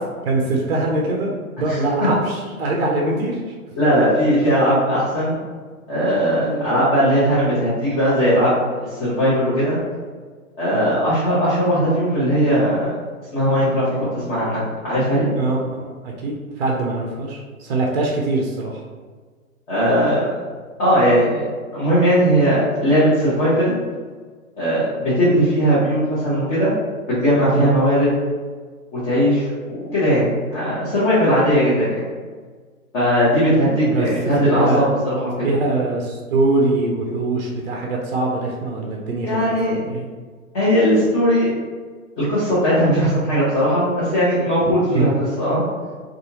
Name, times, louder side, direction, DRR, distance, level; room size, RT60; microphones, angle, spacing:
voice 1, 0.2-3.5 6.5-6.7 10.7-10.9 15.3-18.8 27.5-27.7 33.8-34.1 34.4-34.9 35.4-40.0 44.6-45.1, right 2 dB, 45° right, -1 dB, 0.4 m, -23 dB
voice 2, 1.6-2.1 3.8-5.4 5.9-8.5 8.8-9.8 10.6-12.9 13.3-15.3 19.7-20.4 20.8-21.5 21.7-23.8 24.6-26.7 27.1-28.1 28.9-32.1 32.9-35.5 39.2-39.8 40.5-41.6 42.2-45.1 45.4-45.6, equal, 25° left, -11 dB, 0.9 m, -18 dB
2.6 x 2.4 x 2.8 m, 1.5 s
figure-of-eight pair, 115°, 43 cm